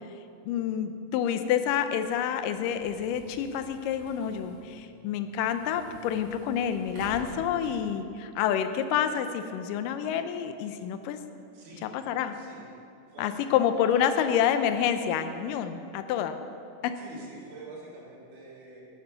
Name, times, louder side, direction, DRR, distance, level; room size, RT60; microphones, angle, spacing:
voice 1, 0.5-11.2 11.9-12.3 13.2-16.4 16.8-16.9, left 9 dB, 80° left, 9 dB, 2.2 m, -28 dB
sound 1, 1.6-8.1, equal, 40° right, 3.7 m, -49 dB
voice 2, 11.5-11.9 12.3-12.6 13.1-14.1 17.0-18.9, right 2 dB, 65° right, -4 dB, 3.6 m, -47 dB
11.5 x 9.4 x 5.6 m, 2.5 s
omnidirectional pair, 4.0 m